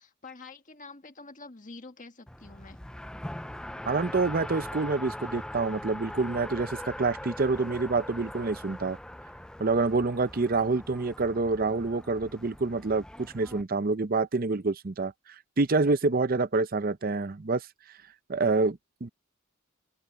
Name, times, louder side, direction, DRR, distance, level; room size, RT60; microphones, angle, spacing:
voice 1, 0.0-2.8, left 3 dB, 40° left, 1.8 m, -47 dB
Race car auto racing, 2.3-13.6, left 1 dB, 5° left, 0.3 m, -41 dB
voice 2, 3.9-9.0 9.6-15.1 15.6-17.6 18.3-19.1, right 3 dB, 45° right, 0.6 m, -27 dB
open air
head